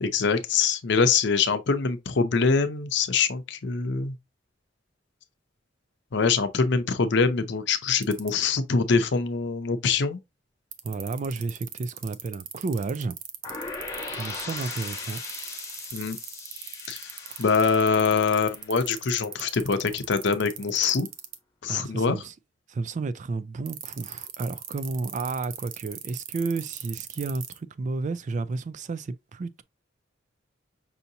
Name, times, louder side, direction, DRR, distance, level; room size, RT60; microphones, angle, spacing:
voice 1, 0.0-4.2 6.1-10.2 15.9-16.2 16.9-17.1 17.4-21.1 21.6-22.2, left 5 dB, 65° left, 0.6 m, -24 dB
sound 1, 8.0-8.3 10.7-21.4 23.7-27.6, right 10 dB, 90° right, 0.6 m, -38 dB
voice 2, 10.8-13.2 14.1-15.2 21.7-22.3 22.7-29.6, right 3 dB, 40° right, 0.3 m, -32 dB
sound 2, 13.4-19.3, left 4 dB, 15° left, 0.9 m, -39 dB
5.6 x 2.8 x 2.6 m
head